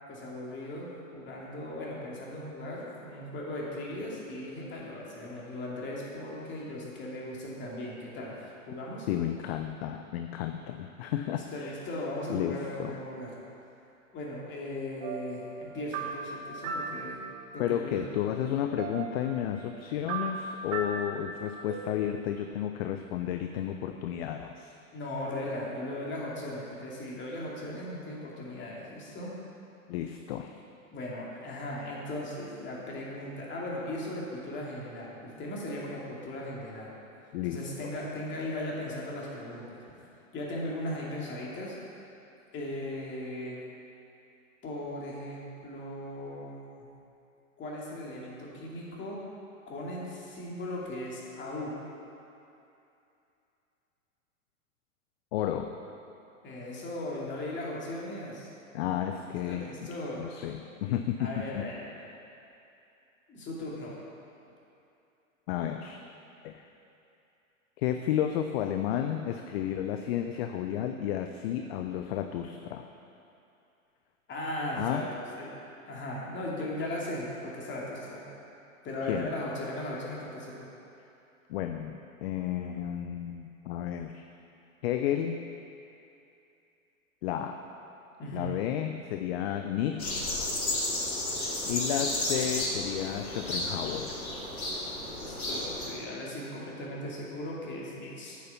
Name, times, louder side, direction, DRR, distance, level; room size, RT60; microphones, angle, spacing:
voice 1, 0.1-9.1 11.5-13.3 14.1-17.2 17.5-18.0 24.9-29.3 30.9-36.9 37.5-40.0 40.3-41.8 42.5-43.6 44.6-46.6 47.6-49.2 49.7-51.7 56.4-58.5 59.5-60.3 61.2-61.8 63.3-64.0 74.3-75.0 75.3-75.5 75.9-78.3 78.8-80.7 88.2-88.5 95.2-98.4, left 1 dB, 25° left, -4 dB, 2.6 m, -38 dB
voice 2, 9.1-11.7 12.3-13.0 17.6-24.7 29.9-30.6 37.3-37.9 55.3-55.7 58.7-59.7 60.2-61.3 65.5-66.0 66.4-66.6 67.8-72.9 74.8-75.1 79.0-79.3 81.5-84.2 84.8-85.4 87.2-87.6 88.3-90.3 91.4-94.2, left 10 dB, 50° left, 6 dB, 0.6 m, -32 dB
sound 1, 15.0-17.8 18.2-18.3 18.6-21.9, right 4 dB, 40° right, 1.3 m, -38 dB
sound 2, 90.0-95.9, left 1 dB, 85° left, 2.8 m, -32 dB
9.2 x 6.9 x 7.1 m, 2.7 s
hypercardioid pair, 105°, 42 cm